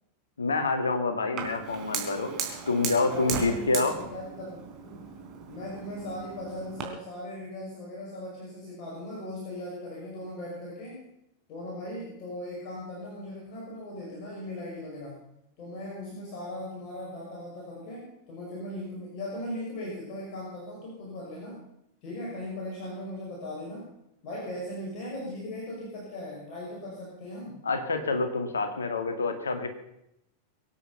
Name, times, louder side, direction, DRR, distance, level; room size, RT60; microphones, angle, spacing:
voice 1, 0.4-2.3 2.7-4.0 27.6-29.7, left 3 dB, 70° left, 7 dB, 2.2 m, -27 dB
Fire, 1.4-6.8, right 6 dB, 30° right, 3.5 m, -37 dB
voice 2, 3.1-5.1 5.5-11.1 11.5-15.2 15.6-21.6 22.0-23.9 24.2-27.6, left 1 dB, 40° left, -4 dB, 5.9 m, -38 dB
23.5 x 9.3 x 5.7 m, 0.82 s
figure-of-eight pair, 90°, 0 cm